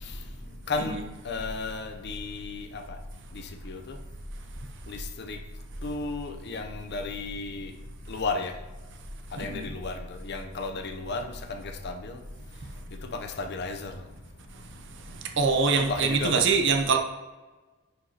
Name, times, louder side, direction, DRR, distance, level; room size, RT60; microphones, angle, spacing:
voice 1, 1.2-2.8 3.6-4.0 4.9-5.4 5.8-7.7 8.1-8.5 9.3-12.2 13.2-13.9 15.7-16.4, left 3 dB, 55° left, 5 dB, 0.7 m, -33 dB
voice 2, 9.3-9.7 14.5-14.7 15.0-17.0, right 4 dB, 60° right, 4 dB, 0.8 m, -25 dB
9.8 x 5.0 x 2.9 m, 1.2 s
head